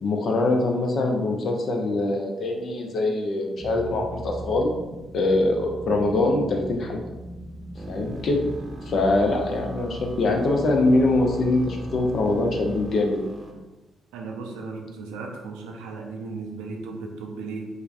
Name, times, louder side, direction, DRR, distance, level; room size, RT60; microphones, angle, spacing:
voice 1, 0.0-4.7 5.1-7.0 7.9-8.4 8.8-13.2, left 2 dB, 60° left, 2 dB, 0.4 m, -23 dB
sound 1, 3.6-12.9, equal, 25° left, 0.7 m, -39 dB
sound 2, 7.7-13.5, right 1 dB, 35° right, 0.6 m, -43 dB
voice 2, 14.1-17.7, right 4 dB, 80° right, 1 dB, 0.4 m, -36 dB
3.2 x 2.0 x 2.4 m, 1.1 s
hypercardioid pair, 45°, 0 cm